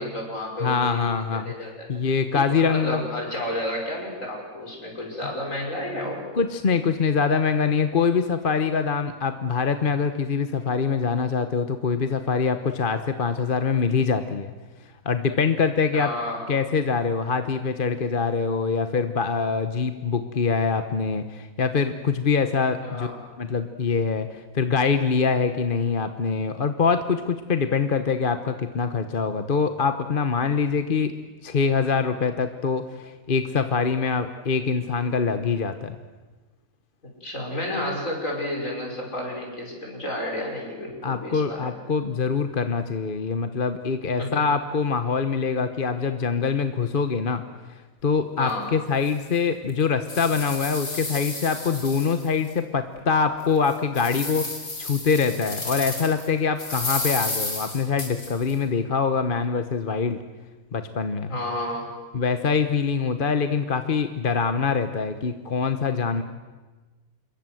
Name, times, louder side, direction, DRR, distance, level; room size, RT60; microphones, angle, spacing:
voice 1, 0.0-1.0 1.3-2.0 2.3-6.2 15.9-16.4 22.8-23.2 37.2-41.8 44.2-44.5 48.4-48.7 61.3-62.0, left 1 dB, 60° left, 0 dB, 6.3 m, -31 dB
voice 2, 0.6-1.5 1.9-3.0 6.3-14.5 15.0-16.1 16.5-23.1 23.4-31.1 31.4-36.0 41.0-47.4 48.0-54.5 54.8-60.2 60.7-61.3 62.1-66.2, left 5 dB, 40° left, 9 dB, 1.2 m, -24 dB
sound 1, 48.4-48.5 49.1-49.2 49.7-52.5 53.0-53.1 53.6-56.3 56.6-58.5, left 2 dB, 80° left, 5.3 m, -32 dB
27.5 x 22.5 x 7.8 m, 1.3 s
omnidirectional pair, 1.5 m